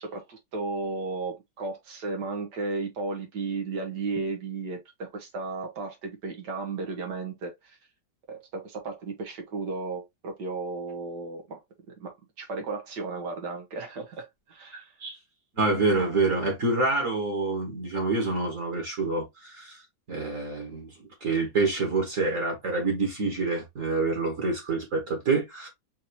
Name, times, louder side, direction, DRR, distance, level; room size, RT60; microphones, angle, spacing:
voice 1, 0.0-7.8 8.3-11.6 11.9-14.9, right 3 dB, 75° right, 1.9 m, -34 dB
voice 2, 15.6-19.8 20.1-25.7, right 3 dB, 50° right, 2.0 m, -27 dB
5.6 x 2.9 x 2.9 m
omnidirectional pair, 1.9 m